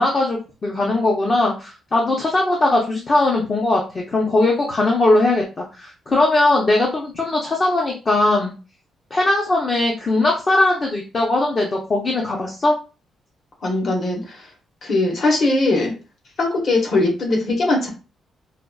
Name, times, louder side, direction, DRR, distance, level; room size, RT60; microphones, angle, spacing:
voice 1, 0.0-8.5 9.1-12.8, left 2 dB, 25° left, -1 dB, 0.6 m, -19 dB
voice 2, 13.6-14.5 14.8-15.9 16.4-17.9, left 2 dB, 40° left, 0 dB, 1.0 m, -20 dB
4.8 x 2.3 x 2.3 m, 0.33 s
cardioid pair, 170°, 0 cm